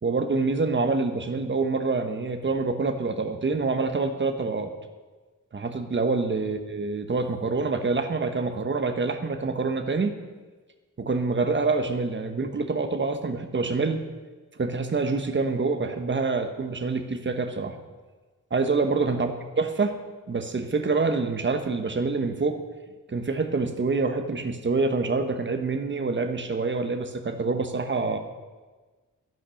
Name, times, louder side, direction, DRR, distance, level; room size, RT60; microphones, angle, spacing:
voice 1, 0.0-4.7 5.5-10.2 11.0-14.0 14.6-17.8 18.5-19.3 19.6-20.0 20.3-22.6 23.1-28.2, right 3 dB, 35° right, 7 dB, 1.1 m, -26 dB
12.0 x 10.5 x 6.4 m, 1.3 s
wide cardioid pair, 165°, 32 cm